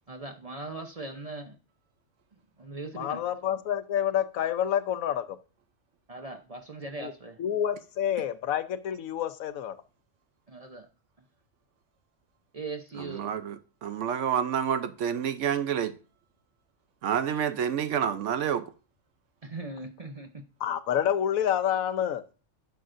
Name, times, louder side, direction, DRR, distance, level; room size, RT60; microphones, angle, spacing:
voice 1, 0.1-1.6 2.3-3.2 6.1-7.4 10.5-10.9 11.2-11.3 12.5-13.4 19.4-20.4, right 3 dB, 35° right, 0.6 m, -40 dB
voice 2, 3.0-5.4 7.0-7.1 7.4-9.8 20.6-22.2, left 10 dB, 80° left, 1.1 m, -28 dB
voice 3, 13.0-13.6 13.8-15.9 17.0-18.6, right 8 dB, 65° right, 0.9 m, -28 dB
10.5 x 6.4 x 2.5 m
omnidirectional pair, 1.4 m